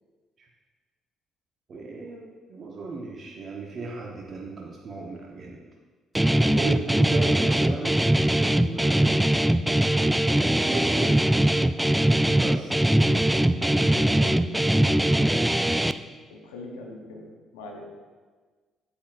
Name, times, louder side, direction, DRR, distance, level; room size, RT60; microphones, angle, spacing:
voice 1, 1.7-5.6 6.5-8.1 8.5-9.3 10.5-11.4 12.4-12.8, right 3 dB, 50° right, -1 dB, 1.0 m, -35 dB
Guitar, 6.1-15.9, right 1 dB, 10° right, 0.3 m, -21 dB
voice 2, 13.9-15.0 16.3-17.9, left 2 dB, 80° left, 1 dB, 1.0 m, -43 dB
8.1 x 8.0 x 2.6 m, 1.4 s
hypercardioid pair, 45°, 0 cm